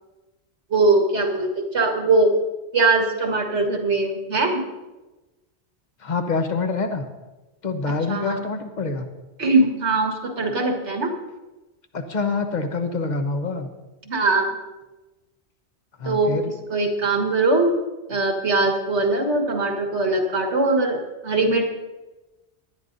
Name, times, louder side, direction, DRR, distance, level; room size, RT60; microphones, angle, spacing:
voice 1, 0.7-2.3 2.7-4.6 8.1-8.4 9.4-11.1 14.1-14.6 16.1-16.4 16.7-17.7 18.1-21.6, right 2 dB, 90° right, 2 dB, 1.9 m, -21 dB
voice 2, 6.0-7.1 7.6-9.1 11.9-13.7 16.0-16.5, left 3 dB, 45° left, 6 dB, 1.1 m, -26 dB
18.5 x 11.5 x 2.6 m, 1.1 s
omnidirectional pair, 1.1 m